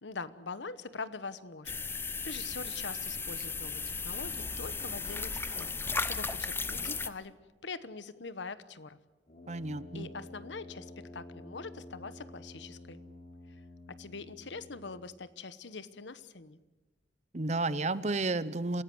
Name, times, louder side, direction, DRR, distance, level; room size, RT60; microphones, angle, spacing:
voice 1, 0.0-7.3 7.6-9.0 9.9-13.0 13.9-16.6, left 4 dB, 75° left, 15 dB, 1.1 m, -43 dB
sound 1, 1.7-7.1, left 4 dB, 10° left, 0.7 m, -35 dB
Brass instrument, 9.3-15.1, left 1 dB, 40° left, 3.2 m, -50 dB
voice 2, 9.5-10.1 17.3-18.8, right 2 dB, 40° right, 16 dB, 0.8 m, -32 dB
28.0 x 16.5 x 7.9 m, 1.2 s
head